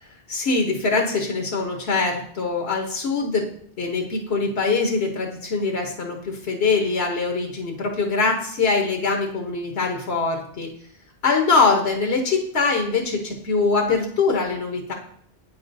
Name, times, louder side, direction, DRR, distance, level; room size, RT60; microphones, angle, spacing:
voice 1, 0.3-3.5 3.8-10.7 11.2-14.9, left 4 dB, 80° left, 2 dB, 1.2 m, -23 dB
8.4 x 5.9 x 2.6 m, 0.62 s
omnidirectional pair, 1.1 m